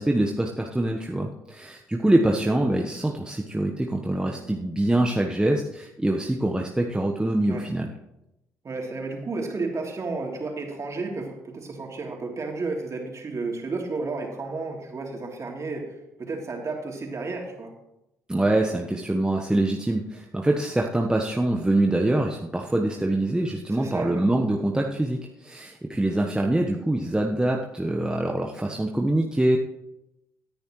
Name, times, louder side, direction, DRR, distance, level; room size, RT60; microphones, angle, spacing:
voice 1, 0.0-7.9 18.3-29.6, right 1 dB, 10° right, 1 dB, 1.2 m, -24 dB
voice 2, 8.6-17.7 23.7-24.3, right 3 dB, 40° right, 0 dB, 3.2 m, -32 dB
18.0 x 10.0 x 3.2 m, 0.89 s
hypercardioid pair, 45°, 8 cm